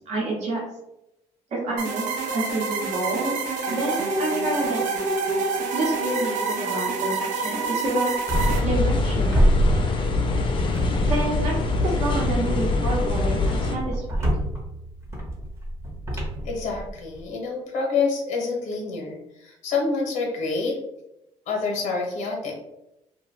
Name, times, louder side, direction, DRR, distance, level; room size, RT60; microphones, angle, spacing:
voice 1, 0.1-0.6 1.5-3.4 3.7-5.0 5.7-8.1 8.6-9.4 11.1-11.6 11.8-14.3, right 2 dB, 60° right, -3 dB, 0.8 m, -28 dB
sound 1, 1.8-8.6, right 3 dB, 85° right, 0.5 m, -27 dB
sound 2, 8.3-13.8, left 3 dB, 40° left, 0.5 m, -24 dB
sound 3, 8.3-9.1 9.3-10.4 10.7-11.6 12.1-17.2, right 1 dB, 20° right, 0.8 m, -27 dB
voice 2, 16.4-20.8 21.5-22.5, left 4 dB, 80° left, -1 dB, 0.7 m, -27 dB
2.5 x 2.2 x 3.2 m, 0.88 s
cardioid pair, 100°, 13 cm